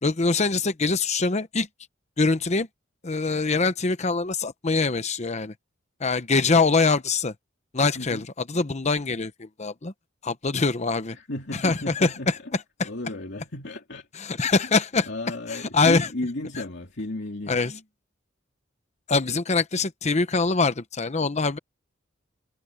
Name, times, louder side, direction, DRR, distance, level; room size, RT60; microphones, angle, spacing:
voice 1, 0.0-1.7 2.2-2.7 3.0-5.5 6.0-7.3 7.7-9.9 10.2-11.2 11.5-12.9 14.2-15.1 15.5-16.1 16.5-16.6 17.5-17.8 19.1-21.6, left 4 dB, 35° left, 0.9 m, -24 dB
voice 2, 7.9-8.3 11.1-12.3 12.8-14.1 14.4-14.5 15.0-17.7, left 1 dB, 60° left, 2.9 m, -34 dB
head